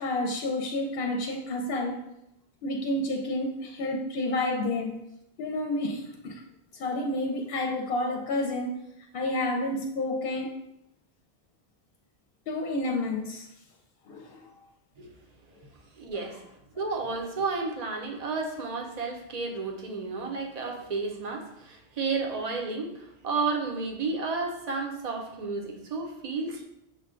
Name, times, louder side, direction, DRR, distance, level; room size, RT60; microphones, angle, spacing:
voice 1, 0.0-2.0 2.6-5.0 5.4-6.4 6.7-8.8 9.1-10.6 12.5-13.5 14.1-14.5 16.1-16.3, left 1 dB, 65° left, 2 dB, 0.7 m, -30 dB
voice 2, 16.0-16.4 16.8-26.6, right 4 dB, 45° right, 3 dB, 0.6 m, -32 dB
6.4 x 2.2 x 3.6 m, 0.85 s
omnidirectional pair, 1.1 m